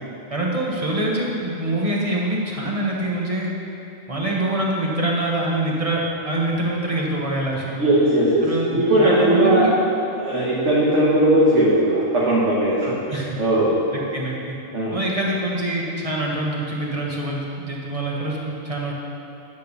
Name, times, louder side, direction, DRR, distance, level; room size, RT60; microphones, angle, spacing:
voice 1, 0.3-3.5 4.1-7.7 8.4-8.7 9.0-9.7 12.8-13.4 13.9-14.6 14.9-18.9, right 1 dB, 25° right, -3 dB, 1.2 m, -25 dB
voice 2, 7.7-8.4 8.7-9.7 10.1-12.9 13.4-13.7 14.7-14.9, right 1 dB, 65° right, -8 dB, 1.7 m, -18 dB
9.2 x 5.2 x 6.8 m, 2.9 s
omnidirectional pair, 1.4 m